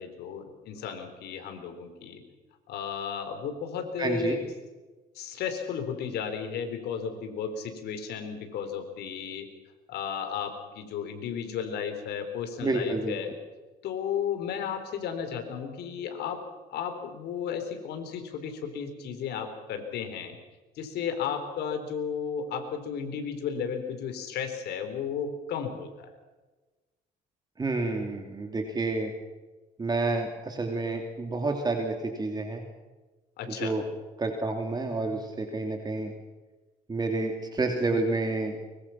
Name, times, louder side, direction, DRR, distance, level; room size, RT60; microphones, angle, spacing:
voice 1, 0.0-2.2 2.7-4.4 5.1-9.5 9.9-13.3 13.8-16.4 16.7-20.4 20.8-26.1 33.4-33.7, left 7 dB, 75° left, 6 dB, 3.9 m, -34 dB
voice 2, 4.0-4.3 12.6-13.2 27.6-29.1 29.8-32.6 33.6-33.8 34.2-36.1 36.9-38.6, right 3 dB, 25° right, 3 dB, 2.9 m, -29 dB
23.5 x 22.5 x 5.8 m, 1.2 s
cardioid pair, 110°, 17 cm